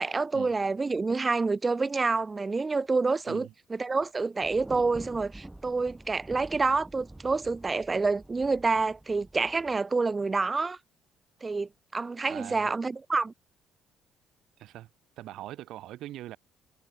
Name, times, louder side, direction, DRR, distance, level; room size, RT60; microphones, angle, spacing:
voice 1, 0.0-10.8 11.4-13.3, right 4 dB, 30° right, 0.5 m, -28 dB
Thunder, 4.4-9.8, right 1 dB, 10° right, 1.8 m, -48 dB
voice 2, 12.3-12.7 14.6-14.9 15.2-16.4, right 14 dB, 70° right, 1.5 m, -42 dB
hypercardioid pair, 55°, 0 cm